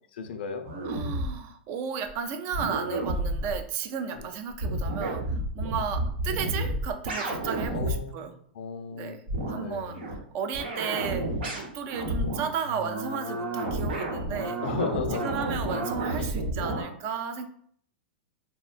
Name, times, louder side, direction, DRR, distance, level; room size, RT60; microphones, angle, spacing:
voice 1, 0.1-0.7 4.1-4.3 7.7-9.2 9.6-10.0 14.6-15.3 16.2-16.3, left 5 dB, 75° left, 7 dB, 0.4 m, -35 dB
sound 1, 0.6-1.3 2.1-2.2 2.5-3.6 4.2-4.3 4.5-8.0 9.3-9.6 9.9-10.2 10.5-16.8, right 1 dB, 80° right, 1.0 m, -31 dB
voice 2, 0.8-8.4 8.9-9.2 9.5-11.3 11.5-14.6 14.9-17.5, right 6 dB, 45° right, 8 dB, 0.4 m, -34 dB
3.6 x 2.1 x 2.4 m, 0.63 s
hypercardioid pair, 120°, 6 cm